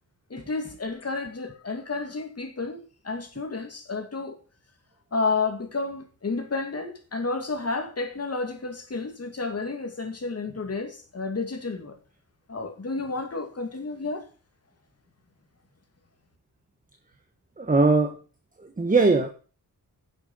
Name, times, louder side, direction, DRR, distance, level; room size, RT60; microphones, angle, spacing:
voice 1, 0.3-4.4 5.1-12.0 12.5-14.3, left 3 dB, 40° left, 2.5 m, -31 dB
voice 2, 17.6-18.1 18.8-19.3, right 3 dB, 20° right, 1.3 m, -20 dB
10.5 x 7.1 x 5.5 m
wide cardioid pair, 95°, 37 cm